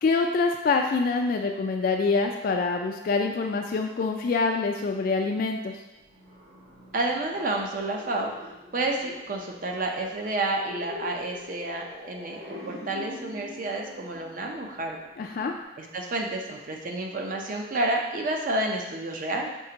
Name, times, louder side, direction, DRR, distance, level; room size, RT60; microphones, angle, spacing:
voice 1, 0.0-5.8 15.2-15.5, left 4 dB, 55° left, 3 dB, 0.3 m, -25 dB
sound 1, 5.9-15.6, left 2 dB, 70° right, 1.3 m, -45 dB
voice 2, 6.9-8.3 8.7-15.0 15.8-19.5, right 2 dB, 50° right, 1 dB, 0.6 m, -30 dB
5.4 x 3.3 x 2.8 m, 0.99 s
head